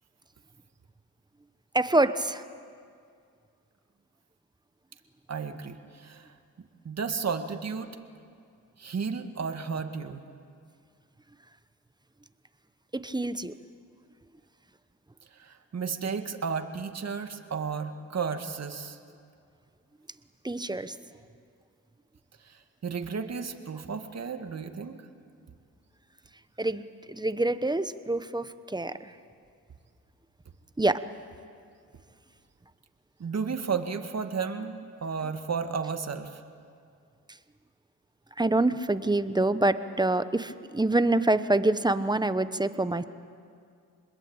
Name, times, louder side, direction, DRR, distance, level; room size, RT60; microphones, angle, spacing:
voice 1, 1.7-2.4 12.9-13.6 20.4-21.0 26.6-29.1 30.8-31.0 38.4-43.0, right 2 dB, 10° right, 12 dB, 1.0 m, -26 dB
voice 2, 5.3-6.3 6.8-7.9 8.8-10.2 15.4-19.0 22.8-25.0 33.2-36.4, right 5 dB, 50° right, 6 dB, 2.0 m, -33 dB
26.5 x 21.0 x 8.9 m, 2.3 s
cardioid pair, 70°, 34 cm